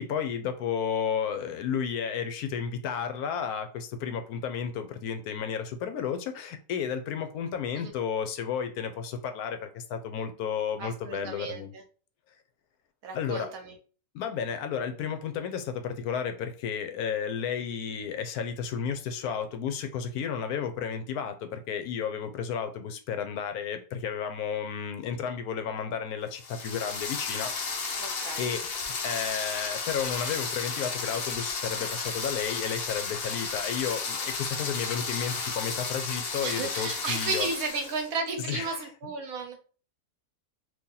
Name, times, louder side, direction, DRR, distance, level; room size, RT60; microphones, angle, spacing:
voice 1, 0.0-11.7 13.1-13.5 14.1-27.5 28.4-37.5 38.5-39.1, left 7 dB, 75° left, 7 dB, 1.0 m, -32 dB
voice 2, 10.8-11.8 13.0-13.7 28.0-28.5 36.4-39.6, right 4 dB, 70° right, 5 dB, 1.2 m, -34 dB
sound 1, 26.3-38.1, left 4 dB, 55° left, 0.7 m, -33 dB
2.8 x 2.7 x 3.7 m, 0.38 s
omnidirectional pair, 1.6 m